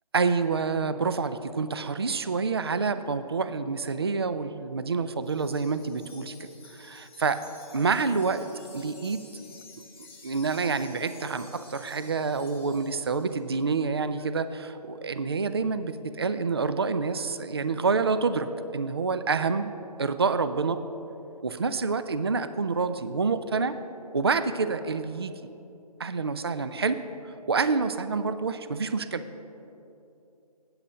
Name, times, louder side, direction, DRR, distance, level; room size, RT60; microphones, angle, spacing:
voice 1, 0.1-7.4 7.7-8.5 8.7-9.2 10.2-18.5 18.7-19.7 20.0-20.8 21.4-23.8 24.1-25.3 26.0-27.0 27.2-29.2, right 4 dB, 40° right, 12 dB, 0.4 m, -27 dB
Wind chime, 5.2-13.4, left 3 dB, 20° left, 1.0 m, -51 dB
8.5 x 7.8 x 6.5 m, 2.8 s
figure-of-eight pair, 165°, 21 cm